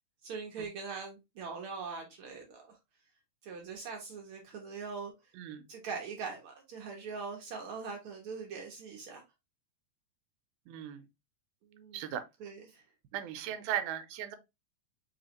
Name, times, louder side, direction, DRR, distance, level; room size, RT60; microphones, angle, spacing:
voice 1, 0.2-2.8 3.4-5.1 5.7-9.2 11.7-12.1 12.4-12.8, right 5 dB, 70° right, 1.2 m, -42 dB
voice 2, 10.7-11.0 11.9-12.2 13.1-14.4, right 10 dB, 90° right, 2.1 m, -37 dB
4.6 x 3.4 x 2.8 m
omnidirectional pair, 3.5 m